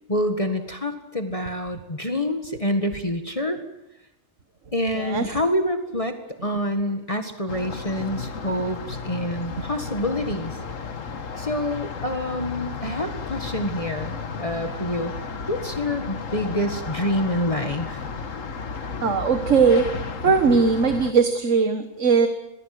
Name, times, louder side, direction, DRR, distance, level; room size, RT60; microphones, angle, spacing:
voice 1, 0.1-3.6 4.7-6.2 6.4-10.6 11.4-15.1 15.5-18.0, left 1 dB, 25° left, 6 dB, 1.9 m, -27 dB
voice 2, 4.9-5.3 19.0-19.8 20.2-22.3, right 5 dB, 70° right, 8 dB, 1.9 m, -19 dB
sound 1, 7.5-21.1, left 5 dB, 85° left, 1.9 m, -33 dB
28.0 x 20.0 x 7.9 m, 0.88 s
omnidirectional pair, 1.3 m